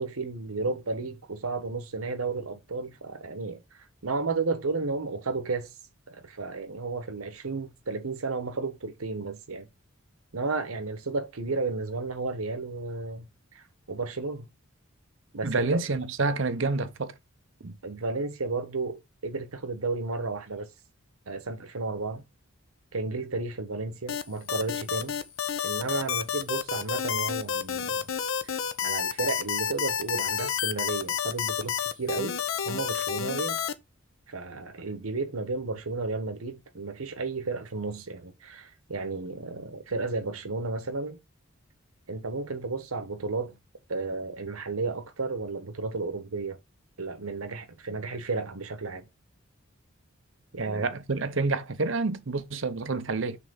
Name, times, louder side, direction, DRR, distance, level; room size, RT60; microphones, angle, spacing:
voice 1, 0.0-3.6 4.0-5.7 6.1-9.7 10.3-14.5 15.3-15.8 17.8-20.7 21.3-22.2 22.9-25.1 25.6-28.1 28.8-32.4 32.6-33.6 34.3-41.2 42.1-43.6 43.9-46.6 47.0-49.1 50.5-50.9, right 3 dB, 85° right, 1.1 m, -33 dB
voice 2, 15.4-17.1 17.6-17.8 50.6-53.4, right 3 dB, 60° right, 0.8 m, -28 dB
sound 1, 24.1-33.7, left 8 dB, 70° left, 0.6 m, -30 dB
5.8 x 3.3 x 5.4 m
head